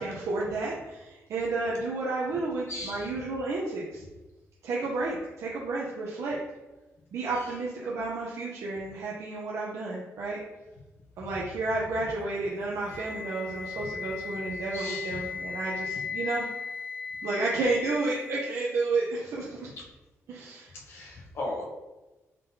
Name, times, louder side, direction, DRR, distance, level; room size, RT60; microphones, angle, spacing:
voice 1, 0.0-4.0 4.6-6.4 7.1-10.4 11.2-16.5 17.2-19.7 20.3-20.7, right 3 dB, 70° right, -5 dB, 0.6 m, -31 dB
voice 2, 2.7-3.1 14.7-15.2 20.7-21.6, left 2 dB, 50° left, -2 dB, 0.9 m, -37 dB
Wind instrument woodwind instrument, 12.8-18.8, left 5 dB, 30° left, 0.4 m, -37 dB
3.8 x 3.7 x 2.7 m, 1.1 s
wide cardioid pair, 170°, 5 cm